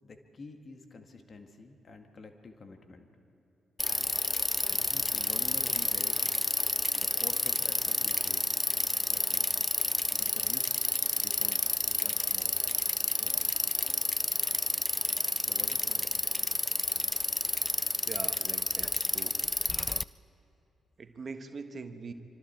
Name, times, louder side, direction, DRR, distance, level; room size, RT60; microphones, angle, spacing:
voice 1, 0.0-3.1 4.7-6.2 7.0-8.6 9.1-9.7 10.1-10.7 11.1-12.6 13.0-13.6 15.4-16.2, left 3 dB, 45° left, 5 dB, 1.9 m, -49 dB
Bicycle, 3.8-20.0, left 2 dB, 20° left, 0.5 m, -30 dB
voice 2, 17.5-19.4 21.0-22.1, right 4 dB, 50° right, 8 dB, 1.4 m, -43 dB
25.0 x 25.0 x 4.5 m, 2.7 s
hypercardioid pair, 40°, 0 cm